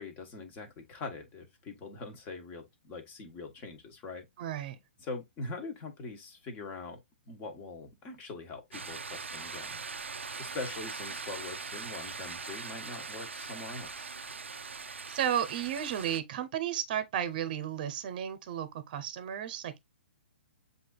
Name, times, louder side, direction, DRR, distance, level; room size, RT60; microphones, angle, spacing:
voice 1, 0.0-4.2 5.0-7.0 7.3-10.1 10.4-14.1, left 3 dB, 25° left, 1.4 m, -43 dB
voice 2, 4.4-4.8 15.1-19.8, right 10 dB, 45° right, 0.8 m, -33 dB
sound 1, 8.7-16.2, right 4 dB, 90° right, 0.5 m, -41 dB
7.5 x 2.7 x 2.3 m
hypercardioid pair, 135°, 6 cm